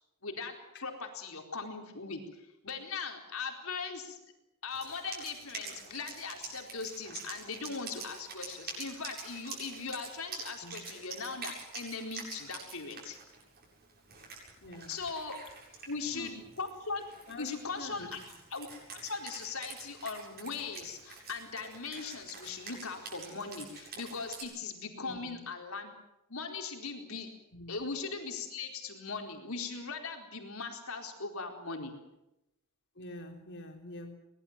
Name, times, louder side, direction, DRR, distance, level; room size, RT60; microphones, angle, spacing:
voice 1, 0.2-0.5 0.8-4.2 4.6-13.2 14.9-15.4 15.9-17.0 17.4-18.2 18.5-25.9 26.3-27.3 27.7-31.9, left 4 dB, 80° left, 3 dB, 4.3 m, -39 dB
Wind instrument woodwind instrument, 4.7-24.4, right 4 dB, 50° right, 7.9 m, -47 dB
voice 2, 14.6-14.9 15.8-16.5 17.3-18.2 24.9-25.4 27.5-27.8 33.0-34.1, left 2 dB, 60° left, 4 dB, 4.2 m, -46 dB
23.5 x 20.0 x 7.5 m, 0.89 s
head